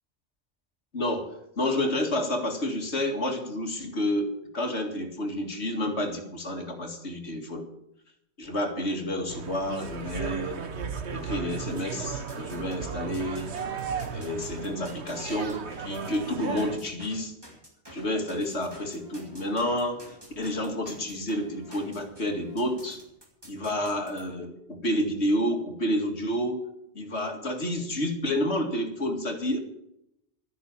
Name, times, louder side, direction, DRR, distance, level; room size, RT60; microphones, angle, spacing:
voice 1, 0.9-7.7 8.4-10.6 11.1-13.5 14.1-17.3 17.9-20.0 20.4-23.0 23.5-26.6 26.9-29.6, left 1 dB, 80° left, 4 dB, 2.5 m, -30 dB
sound 1, 9.3-16.8, right 5 dB, 75° right, 1.5 m, -35 dB
sound 2, 11.7-12.8 13.1-24.2, equal, 20° right, 3.5 m, -50 dB
12.5 x 10.0 x 7.2 m, 0.80 s
omnidirectional pair, 1.1 m